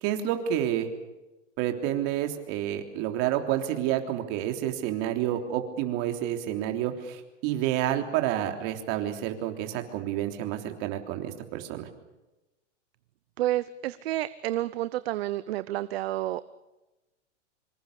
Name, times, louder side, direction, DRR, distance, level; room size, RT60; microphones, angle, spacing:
voice 1, 0.0-0.9 1.6-11.9, right 11 dB, 35° right, 5 dB, 3.5 m, -29 dB
voice 2, 13.4-16.4, right 14 dB, 55° right, 15 dB, 0.9 m, -30 dB
26.0 x 25.5 x 6.9 m, 1.0 s
hypercardioid pair, 155°, 36 cm